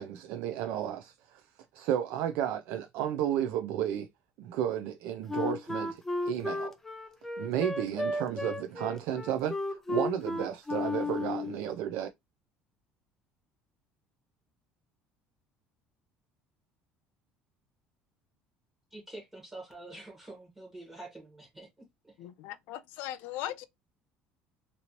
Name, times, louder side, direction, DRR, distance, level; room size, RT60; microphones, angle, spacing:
voice 1, 0.0-1.4 1.7-4.1 4.4-6.0 6.3-6.7 7.4-12.1, right 10 dB, 70° right, 0.3 m, -32 dB
Wind instrument woodwind instrument, 5.3-11.6, left 2 dB, 10° left, 0.4 m, -33 dB
voice 2, 18.9-22.1, right 2 dB, 10° right, 1.1 m, -47 dB
voice 3, 22.2-23.6, left 13 dB, 70° left, 0.4 m, -39 dB
2.9 x 2.6 x 2.8 m
cardioid pair, 160°, 3 cm